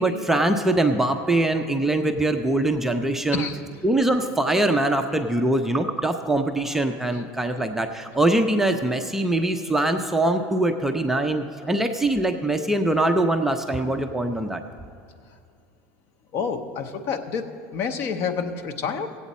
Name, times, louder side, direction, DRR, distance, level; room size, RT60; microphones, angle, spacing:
voice 1, 0.0-3.4 3.8-14.6, right 1 dB, 5° right, 5 dB, 0.4 m, -23 dB
voice 2, 7.1-7.6 11.6-11.7 16.3-19.2, left 6 dB, 45° left, 7 dB, 0.8 m, -29 dB
17.0 x 8.1 x 4.2 m, 2.5 s
supercardioid pair, 145°, 6 cm